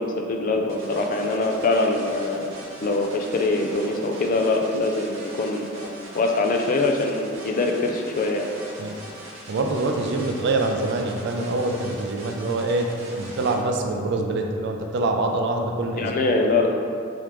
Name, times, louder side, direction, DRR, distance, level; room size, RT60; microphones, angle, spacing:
voice 1, 0.0-2.5 2.8-8.5 16.0-16.7, left 2 dB, 45° left, 3 dB, 0.4 m, -23 dB
sound 1, 0.7-13.5, right 1 dB, 75° right, 0.8 m, -41 dB
voice 2, 9.5-16.4, right 2 dB, 60° right, 3 dB, 0.4 m, -25 dB
3.6 x 3.5 x 3.0 m, 2.4 s
head